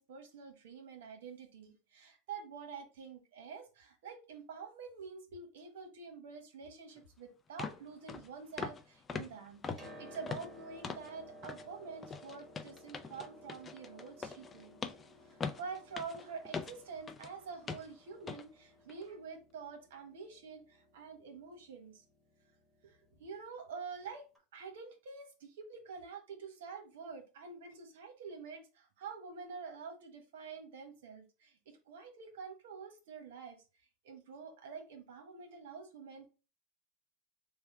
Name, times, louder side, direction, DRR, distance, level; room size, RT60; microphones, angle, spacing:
voice 1, 0.0-14.8 15.6-22.0 22.8-24.2 24.5-33.6 34.0-36.3, right 5 dB, 85° right, 1.1 m, -47 dB
sound 1, 7.0-7.1 7.6-7.8 8.1-8.3 8.6-8.8 9.1-11.1 11.4-11.7 12.0-17.3 17.7-17.9 18.3-18.5 18.9-19.0, left 5 dB, 20° left, 0.4 m, -42 dB
Piano, 9.5-23.3 24.4-24.5, equal, 10° right, 1.2 m, -57 dB
3.4 x 2.1 x 4.3 m
supercardioid pair, 130°, 0 cm